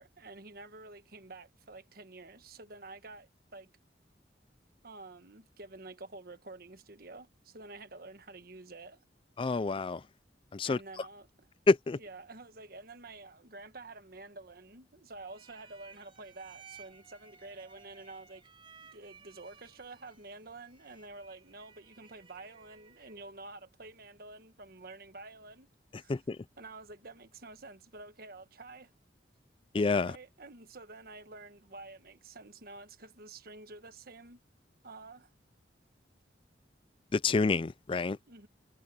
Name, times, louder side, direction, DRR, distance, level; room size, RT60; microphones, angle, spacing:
voice 1, 0.0-3.7 4.8-9.0 10.6-11.3 12.0-18.4 18.9-25.7 26.0-26.1 26.6-28.9 30.0-34.4 34.8-35.3 38.3-38.5, right 3 dB, 55° right, 1.4 m, -49 dB
voice 2, 9.4-10.1 10.5-11.1 11.7-12.0 26.1-26.4 29.7-30.2 37.1-38.2, left 3 dB, 30° left, 0.4 m, -28 dB
sound 1, 15.2-23.3, right 6 dB, 30° right, 4.0 m, -58 dB
head